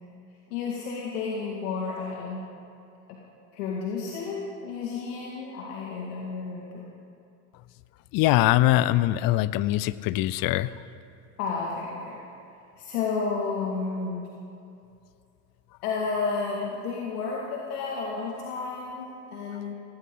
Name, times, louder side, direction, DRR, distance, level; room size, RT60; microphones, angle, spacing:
voice 1, 0.5-2.4 3.1-3.2 3.5-6.9 11.4-12.2 12.8-14.3 15.8-19.7, left 4 dB, 80° left, -3 dB, 2.1 m, -31 dB
voice 2, 8.1-10.7, left 15 dB, 50° left, 17 dB, 0.6 m, -22 dB
17.0 x 16.5 x 3.8 m, 2.6 s
hypercardioid pair, 90°, 45 cm